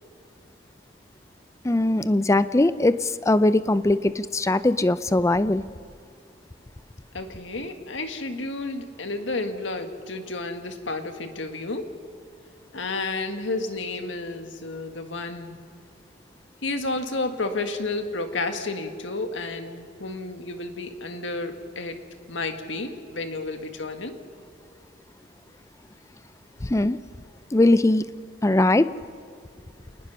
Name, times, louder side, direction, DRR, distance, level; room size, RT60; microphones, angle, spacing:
voice 1, 1.6-5.6 26.6-27.0 27.5-28.1 28.4-28.9, left 2 dB, 15° left, 14 dB, 0.4 m, -20 dB
voice 2, 7.1-11.9 12.7-15.6 16.6-22.0 22.3-24.2, left 2 dB, 75° left, 7 dB, 1.7 m, -31 dB
28.0 x 19.5 x 5.6 m, 2.2 s
head